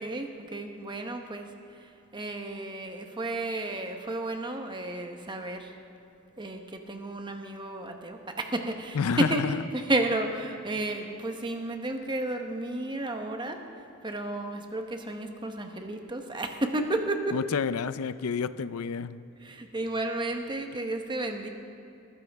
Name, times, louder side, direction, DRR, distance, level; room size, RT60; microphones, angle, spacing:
voice 1, 0.0-5.7 6.4-17.4 19.4-21.5, right 2 dB, 20° right, 5 dB, 1.0 m, -32 dB
voice 2, 8.9-9.6 17.3-19.2, left 6 dB, 75° left, 15 dB, 0.5 m, -29 dB
20.0 x 15.0 x 3.5 m, 2.8 s
head